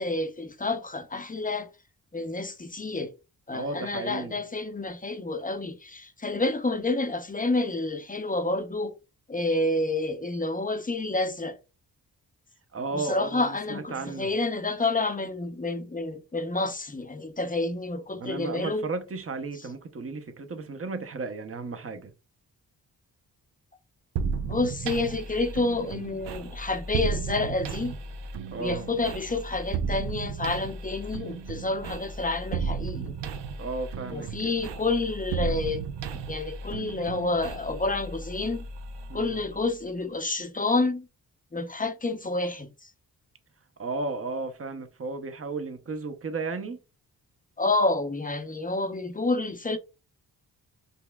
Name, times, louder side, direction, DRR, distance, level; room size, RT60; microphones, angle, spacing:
voice 1, 0.0-1.7 2.1-3.1 3.5-8.9 9.3-11.6 12.9-18.9 24.4-27.9 28.6-33.1 34.1-35.8 36.3-38.6 39.1-41.1 41.5-42.7 47.6-49.8, left 2 dB, 20° left, 0.7 m, -29 dB
voice 2, 3.5-4.4 12.7-14.3 18.1-22.1 28.5-28.9 33.6-34.5 39.1-39.4 43.8-46.8, right 3 dB, 30° right, 0.8 m, -34 dB
sound 1, 24.2-39.8, right 5 dB, 70° right, 0.6 m, -34 dB
5.3 x 2.1 x 2.3 m
supercardioid pair, 50°, 43 cm